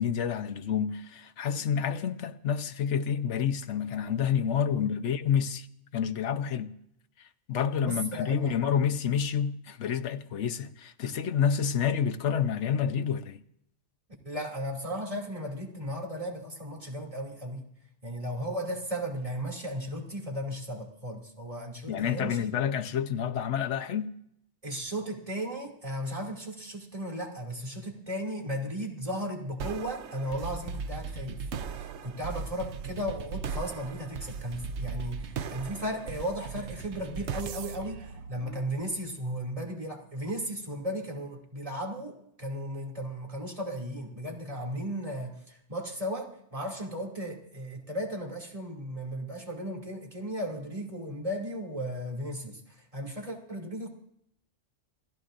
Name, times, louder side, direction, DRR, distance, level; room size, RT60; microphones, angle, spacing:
voice 1, 0.0-5.7 5.9-6.7 7.5-13.4 21.9-24.1, left 8 dB, 85° left, 1.1 m, -28 dB
voice 2, 7.8-8.5 14.2-17.7 18.0-22.4 24.6-31.4 31.7-53.9, equal, 30° right, 2.8 m, -35 dB
sound 1, 29.6-39.0, right 5 dB, 75° right, 1.0 m, -38 dB
27.5 x 16.0 x 2.6 m
omnidirectional pair, 1.2 m